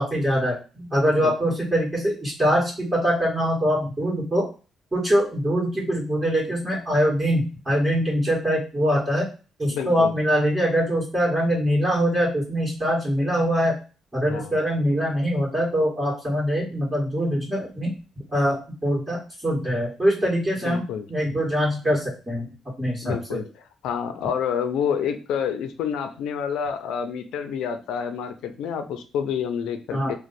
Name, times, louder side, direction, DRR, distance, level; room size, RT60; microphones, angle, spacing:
voice 1, 0.0-4.5 4.9-9.3 9.6-13.8 14.1-17.9 18.3-20.8 21.1-22.5 22.8-23.4 29.9-30.1, equal, 20° right, -5 dB, 1.8 m, -23 dB
voice 2, 1.1-1.5 9.7-10.1 14.2-14.5 20.6-21.1 23.0-23.4 23.8-30.1, left 7 dB, 85° left, 8 dB, 0.5 m, -28 dB
3.0 x 2.2 x 4.2 m, 0.33 s
cardioid pair, 90°, 0 cm